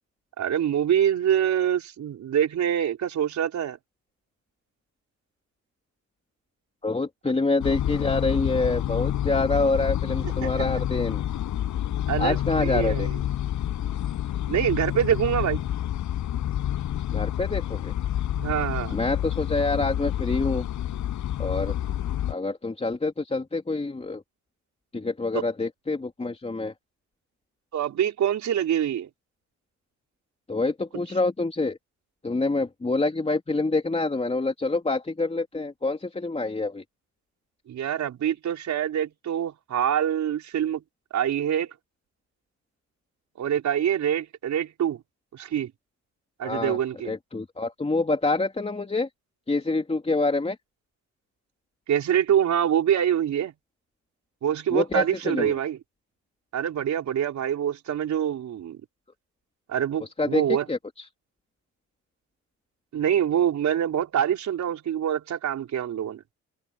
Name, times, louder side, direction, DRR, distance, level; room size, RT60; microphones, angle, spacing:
voice 1, 0.4-3.8 10.2-10.5 12.1-13.1 14.5-15.6 18.3-18.9 27.7-29.1 37.7-40.8 41.1-41.7 43.4-45.0 45.3-45.7 46.4-47.1 51.9-53.5 54.4-55.8 56.5-58.8 59.7-60.6 62.9-66.2, right 9 dB, 65° right, 5.0 m, -25 dB
voice 2, 6.8-11.2 12.2-13.1 17.1-17.9 18.9-20.6 21.4-21.7 22.3-24.2 24.9-26.7 30.5-31.8 32.2-36.8 46.4-46.8 47.0-49.1 49.5-50.6 54.7-55.5 60.0-61.1, left 3 dB, 20° left, 3.2 m, -26 dB
sound 1, 7.6-22.3, left 11 dB, 75° left, 5.9 m, -28 dB
cardioid pair, 90°, 30 cm